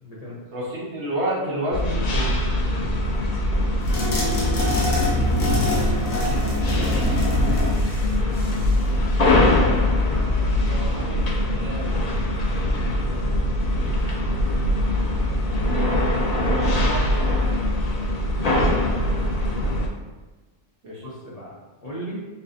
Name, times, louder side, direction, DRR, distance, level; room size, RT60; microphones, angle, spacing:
voice 1, 0.0-0.4 4.9-5.8 6.6-7.0 12.8-13.2 13.7-13.9 18.5-19.8 21.0-21.5 21.8-22.2, equal, 30° left, -7 dB, 1.0 m, -38 dB
voice 2, 0.5-2.3 10.6-12.0 15.6-17.3 20.8-21.0, right 1 dB, 60° right, -5 dB, 1.2 m, -30 dB
sound 1, 1.7-19.9, left 1 dB, 70° left, 0.3 m, -22 dB
sound 2, 3.8-8.9, left 1 dB, 90° left, 1.3 m, -25 dB
6.6 x 2.4 x 2.6 m, 1.2 s
omnidirectional pair, 1.3 m